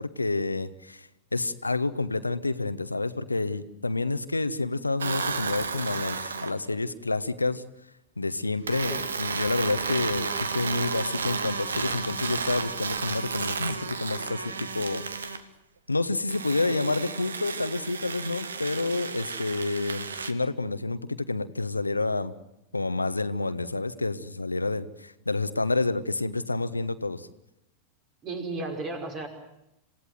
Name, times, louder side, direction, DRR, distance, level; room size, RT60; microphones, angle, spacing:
voice 1, 0.0-7.6 8.2-15.3 15.9-22.3 22.7-27.3, left 3 dB, 80° left, 12 dB, 1.1 m, -29 dB
sound 1, 5.0-6.6 8.7-15.4 16.3-20.3, right 5 dB, 70° right, 1.6 m, -32 dB
voice 2, 28.2-29.3, right 3 dB, 30° right, 5 dB, 5.1 m, -34 dB
28.0 x 17.0 x 9.4 m, 0.85 s
figure-of-eight pair, 90°, 0 cm